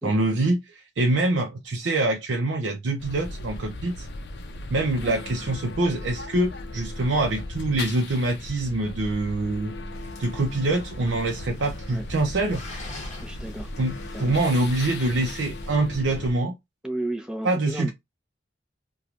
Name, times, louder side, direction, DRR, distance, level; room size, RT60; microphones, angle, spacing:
voice 1, 0.0-4.1 4.7-9.7 10.2-12.6 13.8-16.5 17.4-17.9, right 2 dB, 80° right, 0.5 m, -25 dB
sound 1, 3.0-16.3, left 2 dB, 60° left, 0.5 m, -37 dB
sound 2, 9.9-15.8, left 2 dB, 35° left, 0.9 m, -46 dB
voice 2, 13.2-13.7 14.1-14.4 16.8-17.9, right 1 dB, 5° right, 0.6 m, -33 dB
2.9 x 2.2 x 2.4 m
head